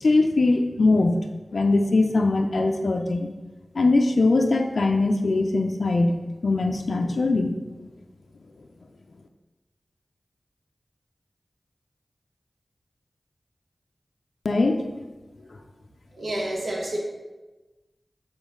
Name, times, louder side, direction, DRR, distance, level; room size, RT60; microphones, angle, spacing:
voice 1, 0.0-1.2 1.5-3.3 3.7-6.2 6.4-7.5 14.4-14.9, left 2 dB, 85° left, 4 dB, 0.5 m, -21 dB
voice 2, 16.1-17.0, right 1 dB, 90° right, -3 dB, 1.4 m, -29 dB
7.0 x 4.3 x 3.8 m, 1.1 s
wide cardioid pair, 70°, 0 cm